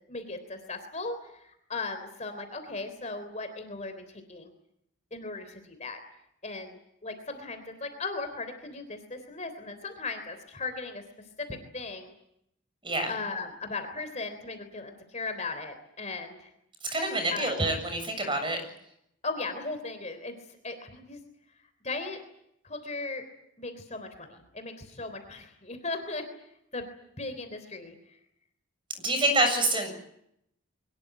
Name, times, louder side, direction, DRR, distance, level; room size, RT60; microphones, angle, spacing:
voice 1, 0.1-4.5 5.1-6.0 6.4-11.0 11.4-12.1 13.1-16.5 17.3-17.7 19.2-20.4 20.6-21.2 21.8-22.2 22.6-23.2 23.6-26.2 26.7-26.9 27.2-28.2, left 3 dB, 30° left, 8 dB, 3.5 m, -37 dB
voice 2, 16.9-18.6 29.0-29.9, right 1 dB, 25° right, 6 dB, 7.3 m, -27 dB
24.0 x 21.0 x 9.2 m, 0.76 s
head